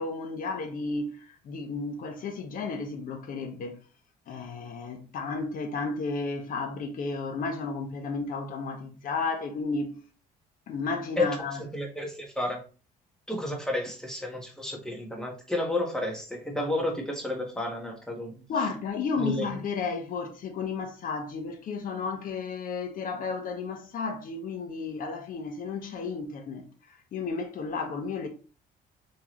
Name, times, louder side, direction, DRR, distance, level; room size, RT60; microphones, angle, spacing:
voice 1, 0.0-3.8 4.3-10.0 10.7-11.6 18.5-26.7 27.1-28.3, left 4 dB, 55° left, 1.1 m, -33 dB
voice 2, 11.7-12.6 13.3-18.4 19.2-19.5, left 1 dB, 5° left, 1.5 m, -31 dB
4.5 x 3.6 x 3.2 m
cardioid pair, 110°, 17 cm